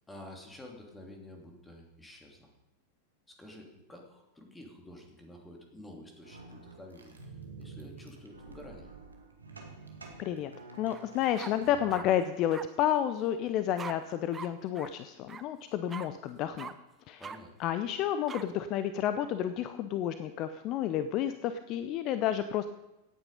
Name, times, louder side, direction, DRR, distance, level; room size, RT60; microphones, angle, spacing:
voice 1, 0.1-2.5 3.3-7.1 7.6-8.9 17.2-17.5, left 1 dB, 10° left, 1 dB, 2.8 m, -50 dB
sound 1, 6.2-12.0, right 4 dB, 75° right, 2.1 m, -49 dB
voice 2, 10.2-10.5 10.8-16.7 17.1-17.2 17.6-22.7, left 10 dB, 40° left, 11 dB, 0.6 m, -30 dB
sound 2, 10.9-11.0 11.4-12.1 12.5-12.7 13.8-13.9 14.3-14.5 14.7-14.9 15.3-15.4 15.9-16.1 16.6-16.7 17.2-17.4 18.3-18.4, right 6 dB, 20° right, 0.8 m, -42 dB
17.5 x 9.0 x 5.3 m, 0.95 s
figure-of-eight pair, 90°, 0 cm